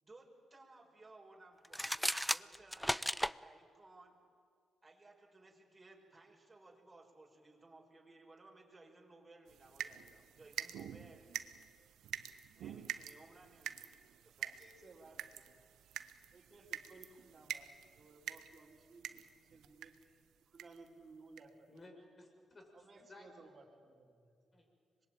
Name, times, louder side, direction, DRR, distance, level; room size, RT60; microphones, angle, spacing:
voice 1, 0.0-4.2 4.8-11.4 12.5-14.6, right 2 dB, 20° right, -1 dB, 5.4 m, -60 dB
sound 1, 1.6-3.4, equal, ahead, 0.6 m, -35 dB
sound 2, 9.5-20.1 20.6-20.9 21.4-21.5 21.8-21.9, right 10 dB, 80° right, 0.9 m, -47 dB
voice 2, 14.6-15.6 16.3-17.7 17.9-19.2 19.5-20.0 20.5-21.7 22.7-24.2 24.5-24.7, right 3 dB, 40° right, -2 dB, 4.0 m, -59 dB
voice 3, 21.7-23.6 24.5-24.7, left 2 dB, 40° left, 2 dB, 6.6 m, -58 dB
25.0 x 21.5 x 9.1 m, 2.2 s
supercardioid pair, 65°, 0 cm